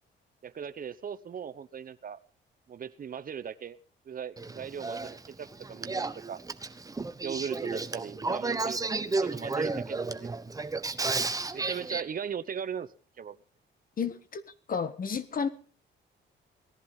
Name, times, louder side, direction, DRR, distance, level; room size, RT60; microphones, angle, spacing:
voice 1, 0.4-2.2 2.7-3.8 4.1-6.4 7.2-10.4 11.5-12.9 13.2-13.4, right 7 dB, 45° right, 0.9 m, -38 dB
Male speech man speaking / Female speech woman speaking / Conversation, 4.4-12.0, right 3 dB, 15° right, 1.1 m, -32 dB
voice 2, 14.0-14.4 14.7-15.5, left 6 dB, 45° left, 1.5 m, -31 dB
18.5 x 11.0 x 5.4 m
cardioid pair, 90°, 20 cm